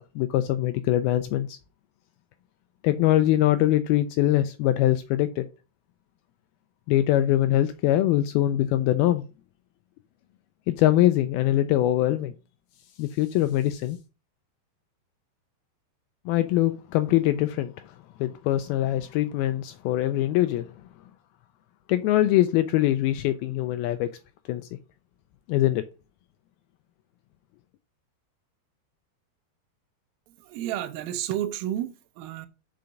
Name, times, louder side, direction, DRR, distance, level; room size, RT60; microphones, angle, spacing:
voice 1, 0.0-1.6 2.8-5.5 6.9-9.3 10.7-12.3 13.0-14.0 16.3-17.7 18.2-20.7 21.9-24.1 24.5-24.7 25.5-25.8, left 14 dB, 85° left, 2.2 m, -23 dB
voice 2, 30.4-32.5, right 12 dB, 75° right, 2.3 m, -31 dB
5.7 x 5.2 x 6.3 m
omnidirectional pair, 4.8 m